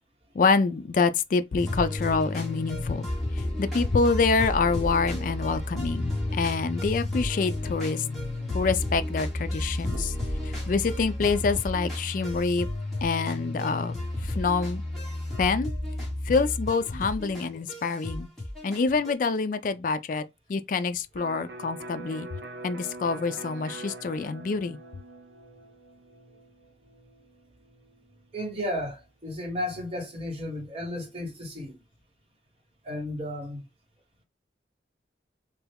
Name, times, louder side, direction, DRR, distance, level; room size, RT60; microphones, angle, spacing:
voice 1, 0.3-3.1 3.4-8.0 8.5-10.1 10.7-12.7 13.0-14.8 15.4-15.7 16.2-18.3 18.6-20.2 20.5-22.3 22.6-24.8, left 4 dB, 50° left, 0.3 m, -26 dB
sound 1, 1.6-19.1, left 1 dB, ahead, 1.2 m, -32 dB
Electric guitar, 21.2-28.8, right 2 dB, 85° right, 0.6 m, -44 dB
voice 2, 28.3-31.8 32.8-33.7, left 1 dB, 35° right, 1.2 m, -34 dB
3.3 x 2.3 x 3.4 m
head